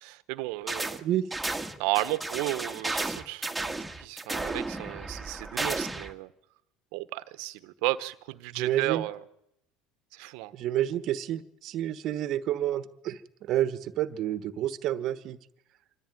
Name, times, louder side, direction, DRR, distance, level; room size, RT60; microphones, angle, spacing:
voice 1, 0.0-1.0 1.8-6.3 6.9-9.2 10.1-10.5, right 18 dB, 75° right, 13 dB, 1.3 m, -33 dB
sound 1, 0.7-1.0 1.3-6.1, right 2 dB, 10° right, 1.9 m, -33 dB
voice 2, 8.5-9.1 10.5-15.4, right 12 dB, 55° right, 13 dB, 1.4 m, -29 dB
25.5 x 14.5 x 9.3 m, 0.80 s
supercardioid pair, 100°, 0 cm